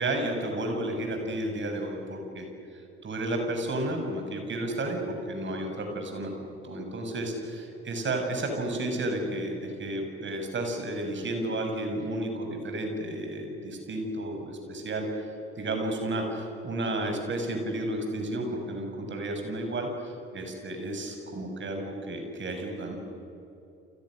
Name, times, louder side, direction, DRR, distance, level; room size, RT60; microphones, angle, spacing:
voice 1, 0.0-2.5 2.7-5.0 5.3-6.3 6.6-15.3 15.6-23.0, right 1 dB, 35° right, 4 dB, 7.0 m, -32 dB
30.0 x 29.5 x 6.5 m, 2.8 s
figure-of-eight pair, 55°, 31 cm